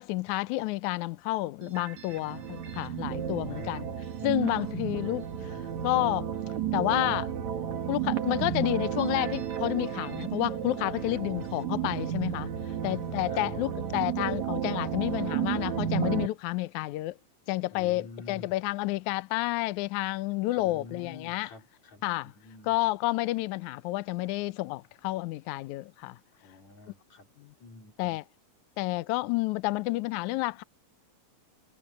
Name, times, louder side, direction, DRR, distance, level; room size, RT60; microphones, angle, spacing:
voice 1, 0.0-3.9 4.2-5.3 5.8-6.4 6.7-7.3 7.9-12.5 12.8-17.2 17.5-21.5 22.0-22.3 22.6-26.2 27.4-27.5 28.0-28.2 28.8-30.6, left 19 dB, 80° left, 1.7 m, -30 dB
sound 1, 1.6-16.3, right 9 dB, 55° right, 3.0 m, -32 dB
voice 2, 3.1-3.8 4.4-4.6 10.9-11.5 12.8-13.8 17.7-18.5 20.6-22.8 26.3-27.3 27.6-28.2, left 3 dB, 50° left, 4.5 m, -49 dB
omnidirectional pair, 4.2 m